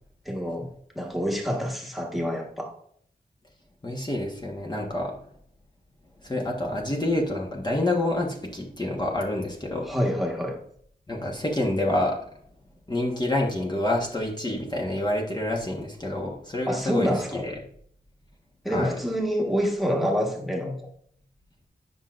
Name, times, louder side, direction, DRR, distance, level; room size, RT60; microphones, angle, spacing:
voice 1, 0.2-0.7 0.9-2.7 9.8-10.6 16.7-17.4 18.6-20.9, equal, ahead, 0 dB, 1.4 m, -27 dB
voice 2, 3.8-5.1 6.2-9.9 11.1-12.2 12.9-17.5 18.7-18.9, left 1 dB, 25° left, -2 dB, 1.3 m, -27 dB
9.9 x 5.7 x 2.5 m, 0.65 s
wide cardioid pair, 95°, 16 cm